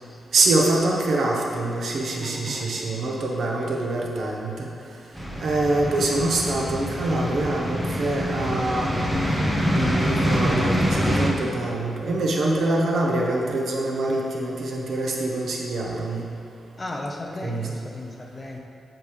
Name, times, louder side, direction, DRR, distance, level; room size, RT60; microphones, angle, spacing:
voice 1, 0.3-4.7 5.4-8.9 9.7-16.2 17.4-17.7, right 2 dB, 60° right, -1 dB, 1.1 m, -25 dB
voice 2, 2.2-2.8 3.6-3.7 16.8-18.6, left 1 dB, 20° left, 0 dB, 0.7 m, -35 dB
sound 1, 5.1-11.3, equal, 5° right, 0.9 m, -25 dB
8.8 x 6.8 x 3.3 m, 2.4 s
wide cardioid pair, 150°, 0 cm